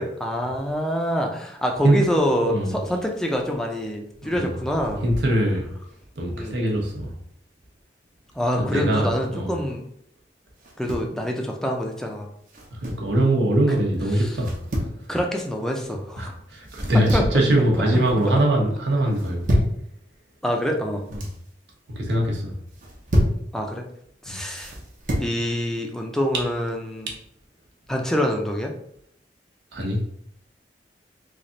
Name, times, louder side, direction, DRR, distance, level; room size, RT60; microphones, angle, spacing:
voice 1, 0.0-5.1 6.3-6.6 8.4-9.8 10.8-12.3 15.1-16.3 17.1-17.2 20.4-21.0 23.5-23.8 24.2-24.7 25.2-27.1 27.9-28.7, equal, 5° left, 1 dB, 0.4 m, -25 dB
voice 2, 2.4-2.8 4.2-4.5 5.0-5.7 6.2-7.1 8.5-9.5 11.1-11.2 12.7-14.6 16.2-19.6 21.1-21.2 22.0-22.5 24.2-24.4 29.7-30.0, right 1 dB, 80° right, -1 dB, 0.9 m, -22 dB
sound 1, 10.6-11.2 12.5-13.1 14.4-15.0 16.7-17.4 17.8-18.3 19.1-19.8 20.8-21.4 22.7-23.4 24.6-25.3, equal, 50° right, 0.8 m, -27 dB
3.2 x 2.4 x 3.8 m, 0.71 s
head